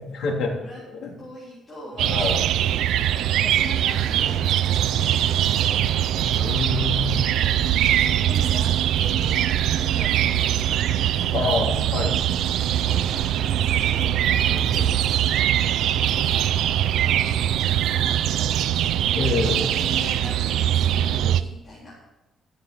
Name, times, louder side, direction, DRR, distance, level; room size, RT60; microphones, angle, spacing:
voice 1, 0.0-0.5 0.9-1.1 2.0-2.5 3.9-4.4 6.3-7.1 11.3-12.2 14.5-14.9 19.1-19.7, left 4 dB, 80° left, -1 dB, 3.3 m, -27 dB
voice 2, 0.6-3.0 3.4-11.5 12.6-14.4 14.7-15.2 15.5-20.3 20.7-21.9, left 1 dB, 25° left, -8 dB, 3.8 m, -42 dB
sound 1, 2.0-21.4, right 11 dB, 85° right, 0.5 m, -22 dB
14.5 x 7.5 x 6.9 m, 0.98 s
cardioid pair, 180°, 0 cm